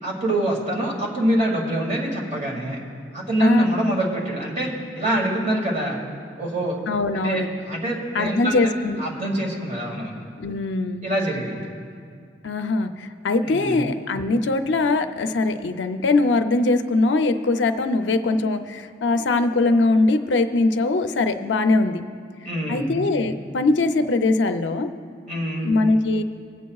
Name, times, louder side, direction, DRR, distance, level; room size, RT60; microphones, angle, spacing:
voice 1, 0.0-2.8 3.1-4.7 4.9-6.0 6.4-6.8 7.1-8.7 9.0-10.2 11.0-11.7 13.4-13.8 22.4-22.9 25.3-25.7, right 1 dB, 40° right, -2 dB, 2.1 m, -25 dB
voice 2, 3.4-3.7 6.9-7.5 8.1-9.0 10.4-11.1 12.4-22.0 22.7-24.9 25.6-26.2, left 3 dB, 80° left, 7 dB, 0.5 m, -21 dB
24.0 x 8.3 x 2.3 m, 2.2 s
head